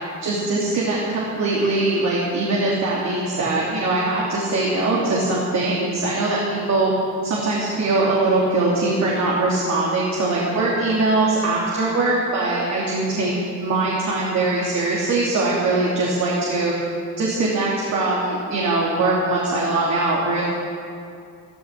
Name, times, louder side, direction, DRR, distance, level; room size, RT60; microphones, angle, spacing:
voice 1, 0.2-6.9 7.2-13.3 13.6-16.7 17.2-20.4, right 2 dB, 65° right, -5 dB, 3.0 m, -21 dB
14.5 x 13.0 x 6.7 m, 2.4 s
cardioid pair, 90°, 30 cm